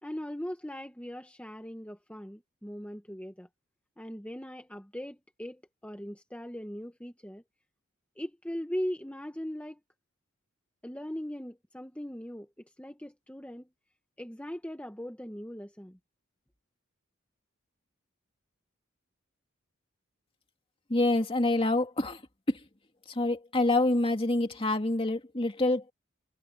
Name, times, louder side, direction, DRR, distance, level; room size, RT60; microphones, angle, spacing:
voice 1, 0.0-3.5 4.0-7.4 8.2-9.8 10.8-13.7 14.2-16.0, equal, 5° left, 1.4 m, -39 dB
voice 2, 20.9-22.2 22.5-22.6 23.1-25.9, left 2 dB, 25° left, 2.4 m, -26 dB
head